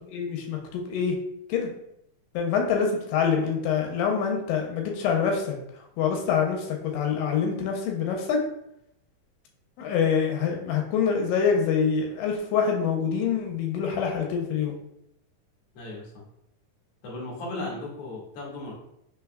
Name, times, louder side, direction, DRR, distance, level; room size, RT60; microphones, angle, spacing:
voice 1, 0.1-1.2 1.5-1.7 2.3-5.6 6.0-8.4 9.8-14.7 17.6-17.7, left 6 dB, 90° left, 2 dB, 2.3 m, -25 dB
voice 2, 15.7-16.2 17.0-18.7, left 1 dB, 60° left, -4 dB, 1.7 m, -36 dB
5.5 x 3.4 x 2.2 m, 0.78 s
omnidirectional pair, 4.0 m